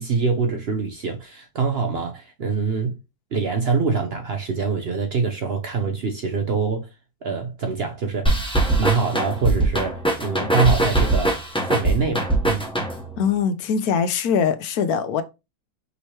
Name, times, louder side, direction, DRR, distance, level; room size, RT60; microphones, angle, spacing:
voice 1, 0.0-3.0 3.3-6.9 7.2-8.4 8.8-11.4 11.7-12.7, right 5 dB, 60° right, 0.7 m, -24 dB
sound 1, 8.2-13.2, right 2 dB, 5° left, 0.8 m, -22 dB
voice 2, 13.2-15.2, left 6 dB, 70° left, 1.0 m, -22 dB
5.4 x 3.1 x 2.8 m
omnidirectional pair, 1.7 m